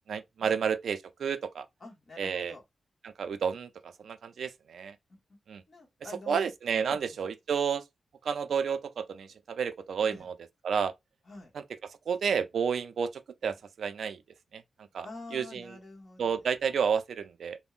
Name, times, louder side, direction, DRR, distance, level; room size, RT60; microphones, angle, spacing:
voice 1, 0.1-1.7 2.2-2.6 3.0-5.0 5.5-5.6 6.3-7.8 8.2-10.3 10.6-10.9 11.5-11.6 12.1-14.2 14.5-14.6 14.9-15.1 15.3-15.8 16.2-17.6, right 6 dB, 80° right, 0.3 m, -31 dB
voice 2, 1.8-2.6 5.7-6.5 6.9-7.3 10.1-10.3 11.3-11.5 15.0-16.4, left 2 dB, 35° left, 1.1 m, -46 dB
3.5 x 2.0 x 2.4 m
wide cardioid pair, 155°, 0 cm